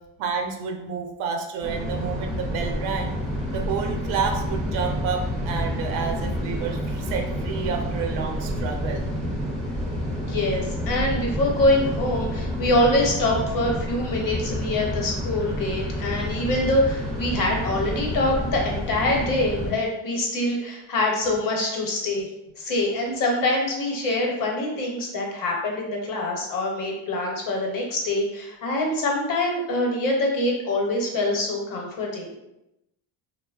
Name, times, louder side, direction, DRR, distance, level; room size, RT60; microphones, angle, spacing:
voice 1, 0.2-3.1 3.5-9.1, right 6 dB, 85° right, 3 dB, 0.7 m, -29 dB
sound 1, 1.6-19.7, equal, ahead, 0.3 m, -29 dB
voice 2, 10.2-22.3 22.6-32.3, left 1 dB, 45° left, 0 dB, 0.8 m, -24 dB
2.8 x 2.1 x 2.3 m, 0.89 s
cardioid pair, 120°, 48 cm